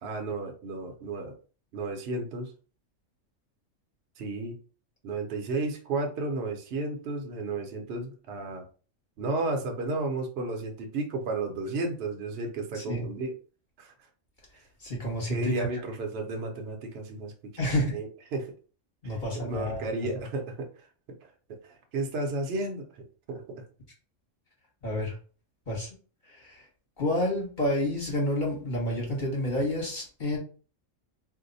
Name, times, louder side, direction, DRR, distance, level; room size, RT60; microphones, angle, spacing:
voice 1, 0.0-1.3 1.7-2.5 4.2-4.6 5.0-8.6 9.2-13.3 13.8-13.9 15.3-17.3 17.6-18.5 19.3-20.7 21.5-21.6 21.9-23.6, right 2 dB, 60° right, 3 dB, 0.9 m, -33 dB
voice 2, 14.8-15.7 17.6-17.9 19.0-19.9 24.8-25.1 25.7-25.9 26.3-26.6 27.0-30.4, left 1 dB, 40° left, -3 dB, 1.1 m, -29 dB
2.6 x 2.1 x 3.9 m, 0.38 s
omnidirectional pair, 1.3 m